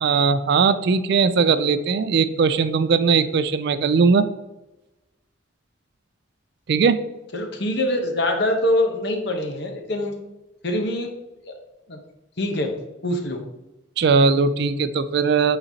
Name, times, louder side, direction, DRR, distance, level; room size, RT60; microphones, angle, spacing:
voice 1, 0.0-4.3 6.7-7.0 14.0-15.6, right 5 dB, 55° right, 13 dB, 0.3 m, -19 dB
voice 2, 7.3-10.1 10.6-11.1 11.5-11.6 11.9-12.0 12.4-12.7 13.0-13.4, left 1 dB, 55° left, 4 dB, 0.9 m, -24 dB
8.7 x 4.0 x 2.8 m, 0.99 s
head